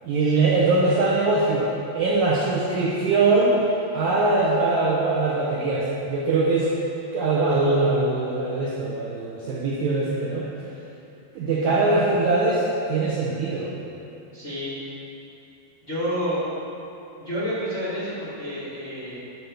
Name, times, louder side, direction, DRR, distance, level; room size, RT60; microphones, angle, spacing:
voice 1, 0.0-3.6 3.9-6.7 7.1-10.5 11.3-13.7, right 3 dB, 80° right, -7 dB, 1.7 m, -22 dB
voice 2, 14.3-14.7 15.8-16.5 17.2-19.2, equal, 60° left, -10 dB, 0.7 m, -29 dB
9.9 x 4.5 x 6.7 m, 2.8 s
omnidirectional pair, 4.7 m